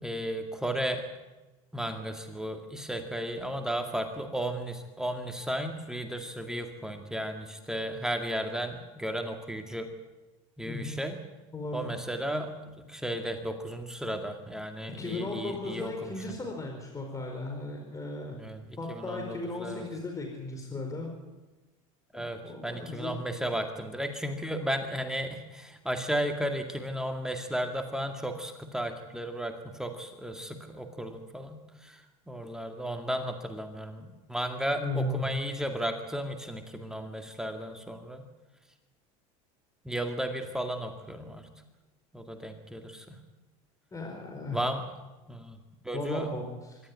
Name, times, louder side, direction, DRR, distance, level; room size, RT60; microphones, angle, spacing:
voice 1, 0.0-1.0 1.7-9.9 10.6-11.2 11.7-16.1 18.4-18.6 18.9-19.8 22.1-38.3 39.8-41.5 42.1-43.2 44.5-44.8 45.3-45.6 45.8-46.3, right 1 dB, 5° right, 5 dB, 2.1 m, -34 dB
voice 2, 10.6-11.0 11.5-11.9 15.0-18.4 18.8-21.1 22.1-23.2 34.8-35.2 43.9-44.6 45.9-46.8, left 2 dB, 20° left, 2 dB, 4.7 m, -36 dB
25.5 x 13.0 x 9.7 m, 1.1 s
supercardioid pair, 105°, 17 cm